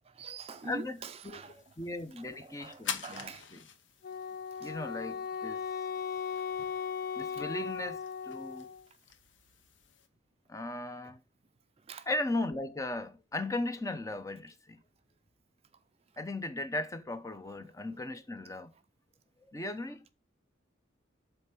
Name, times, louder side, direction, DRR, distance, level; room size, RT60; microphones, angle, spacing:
voice 1, 0.0-1.7 2.2-3.5 4.5-4.8 6.0-6.1 6.3-6.4 7.3-7.5 11.0-11.2 11.8-12.1 17.6-17.7, right 4 dB, 30° right, 0.4 m, -46 dB
sound 1, 0.6-10.1, left 7 dB, 80° left, 1.0 m, -47 dB
voice 2, 0.7-1.0 1.2-3.6 4.6-5.6 7.2-8.0 8.3-8.7 10.5-11.2 12.1-14.8 16.2-18.7 19.5-20.0, left 2 dB, 15° left, 0.7 m, -37 dB
Wind instrument woodwind instrument, 4.0-8.8, left 7 dB, 50° left, 0.4 m, -37 dB
8.0 x 3.3 x 5.9 m
head